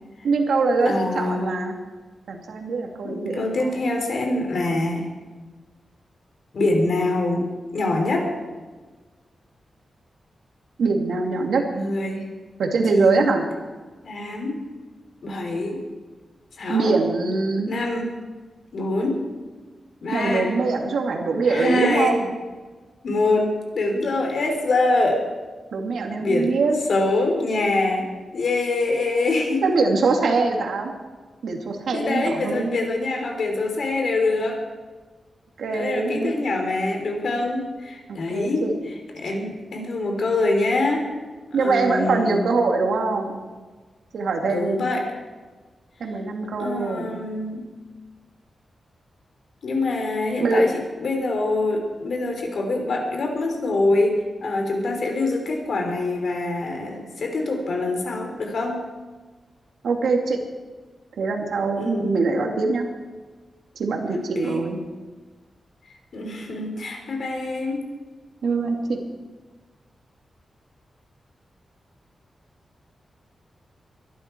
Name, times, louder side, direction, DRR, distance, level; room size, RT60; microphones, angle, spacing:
voice 1, 0.2-1.8 2.3-3.8 10.8-11.7 12.6-13.5 16.7-17.7 20.1-22.3 25.7-26.8 29.6-30.9 31.4-32.8 35.6-36.3 38.1-38.7 41.5-43.4 44.1-44.9 46.0-47.2 50.4-50.7 59.8-60.4 61.2-62.9 63.7-64.8 68.4-69.0, right 3 dB, 85° right, 2 dB, 2.5 m, -23 dB
voice 2, 0.9-1.6 3.0-5.1 6.5-8.3 11.7-12.2 12.9-13.3 14.0-14.6 15.2-15.8 16.6-17.0 17.7-18.1 18.7-19.2 20.0-20.5 21.4-22.2 23.0-25.2 26.2-26.5 26.9-29.7 31.9-34.6 35.7-38.6 39.1-41.1 41.5-42.5 44.4-45.1 46.6-47.7 49.6-50.7 51.0-58.8 61.8-62.2 64.1-64.6 66.1-67.8, left 2 dB, 60° left, 3 dB, 3.5 m, -24 dB
22.5 x 12.0 x 4.6 m, 1.3 s
wide cardioid pair, 165°, 0 cm